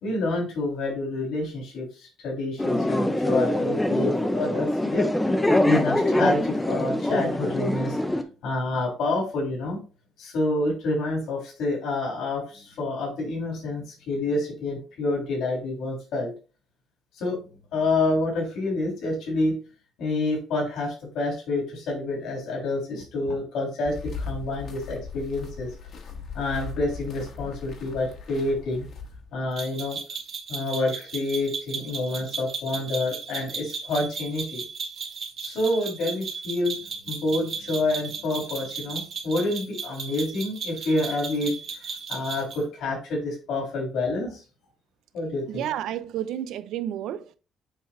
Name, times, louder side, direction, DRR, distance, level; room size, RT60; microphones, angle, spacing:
voice 1, 0.0-5.1 5.6-8.0 8.4-9.8 10.2-16.3 17.1-17.4 17.7-19.5 20.0-25.7 26.3-28.8 29.3-30.0 30.5-34.6 35.4-44.4 45.1-45.7, left 2 dB, 75° left, 3.3 m, -28 dB
sound 1, 2.6-8.2, left 1 dB, 10° left, 0.7 m, -24 dB
sound 2, 23.8-29.4, left 4 dB, 55° left, 1.6 m, -38 dB
sound 3, 29.6-42.6, right 5 dB, 50° right, 1.5 m, -35 dB
voice 2, 45.5-47.4, right 11 dB, 80° right, 0.6 m, -31 dB
7.3 x 5.3 x 2.6 m
cardioid pair, 150°, 0 cm